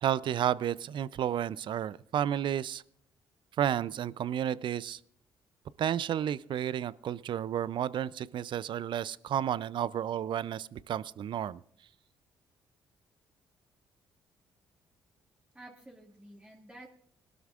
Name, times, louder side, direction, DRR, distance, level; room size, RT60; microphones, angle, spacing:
voice 1, 0.0-2.8 3.6-5.0 5.8-11.6, right 10 dB, 55° right, 20 dB, 0.5 m, -31 dB
voice 2, 15.5-16.9, right 1 dB, 10° right, -1 dB, 2.2 m, -51 dB
21.5 x 12.5 x 2.5 m, 0.66 s
hypercardioid pair, 50°, 10 cm